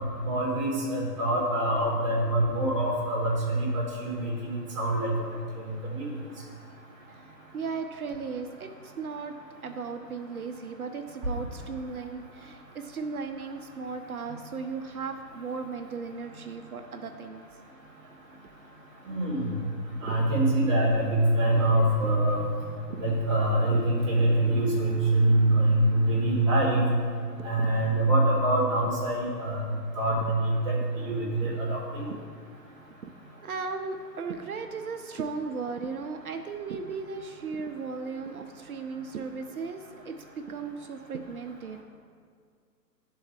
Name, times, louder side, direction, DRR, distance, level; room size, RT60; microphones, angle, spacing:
voice 1, 0.2-5.1 5.6-6.1 19.0-19.5 20.0-22.5 23.0-26.8 27.4-29.6 29.9-32.1, right 1 dB, 20° right, -4 dB, 1.2 m, -25 dB
voice 2, 7.5-9.4 9.6-17.4 20.0-20.2 22.0-22.1 22.9-23.0 23.7-23.8 24.5-24.6 27.4-27.7 32.1-32.2 33.0-33.1 33.4-41.8, right 5 dB, 60° right, 6 dB, 0.6 m, -36 dB
11.5 x 3.9 x 4.4 m, 2.1 s
hypercardioid pair, 160°, 50 cm